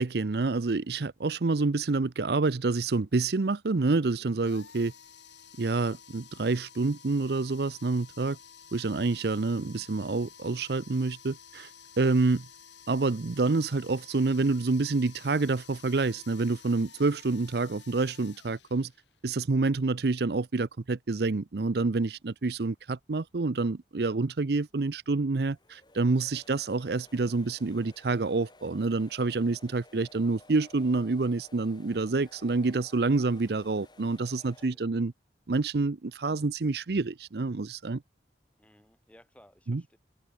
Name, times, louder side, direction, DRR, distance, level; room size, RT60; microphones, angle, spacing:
voice 1, 0.0-4.9 5.6-8.4 8.7-11.7 12.0-12.5 12.9-18.9 19.2-35.1 35.5-38.0 39.7-39.8, right 3 dB, 65° right, 0.6 m, -28 dB
sound 1, 4.4-19.3, left 7 dB, 85° left, 4.8 m, -52 dB
sound 2, 25.5-34.7, left 2 dB, 25° left, 3.4 m, -56 dB
voice 2, 34.3-34.9 38.6-40.0, equal, 5° left, 7.6 m, -60 dB
head